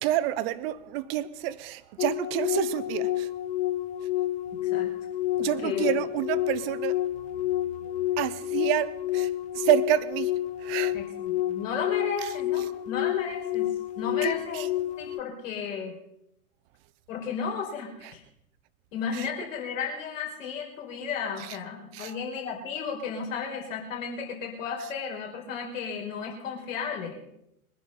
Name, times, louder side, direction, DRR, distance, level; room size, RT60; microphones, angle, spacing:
voice 1, 0.0-3.3 5.4-7.0 7.8-11.0 12.2-12.3 14.2-14.7 18.0-18.1 19.1-19.3 21.4-21.6 21.9-22.1, right 13 dB, 40° right, 0.8 m, -29 dB
sound 1, 2.0-15.2, left 14 dB, 20° left, 0.5 m, -29 dB
voice 2, 5.4-5.9 10.9-13.7 14.0-14.7 15.0-15.9 17.1-18.2 18.9-27.2, left 6 dB, 60° left, 4.9 m, -34 dB
22.0 x 10.0 x 5.7 m
figure-of-eight pair, 95°, 44 cm